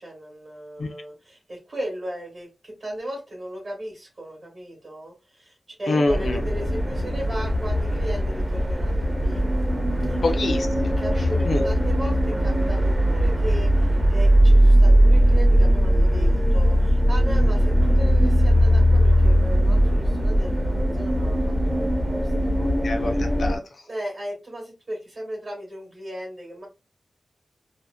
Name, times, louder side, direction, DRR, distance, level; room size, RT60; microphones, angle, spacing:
voice 1, 0.0-9.4 10.0-10.2 11.0-21.4 21.6-22.7 23.9-26.7, right 1 dB, 45° right, 1.0 m, -36 dB
voice 2, 5.9-6.4 10.2-11.0 11.5-11.6 22.8-23.8, left 2 dB, 50° left, 0.5 m, -26 dB
sound 1, 6.1-23.6, equal, 20° right, 0.7 m, -19 dB
2.8 x 2.2 x 2.2 m
wide cardioid pair, 160°, 0 cm